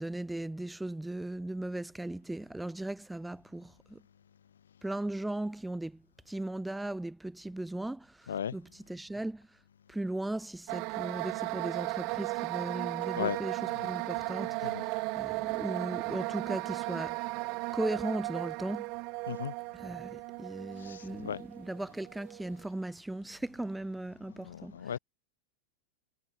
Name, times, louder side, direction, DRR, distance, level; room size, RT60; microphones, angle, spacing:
voice 1, 0.0-4.0 4.8-9.5 9.9-17.2 17.7-18.9 19.7-24.9, right 1 dB, 5° right, 0.7 m, -37 dB
sound 1, 10.7-22.6, right 29 dB, 45° right, 0.5 m, -36 dB
voice 2, 20.8-21.4 24.4-25.0, left 8 dB, 65° left, 0.4 m, -36 dB
figure-of-eight pair, 90°, 0 cm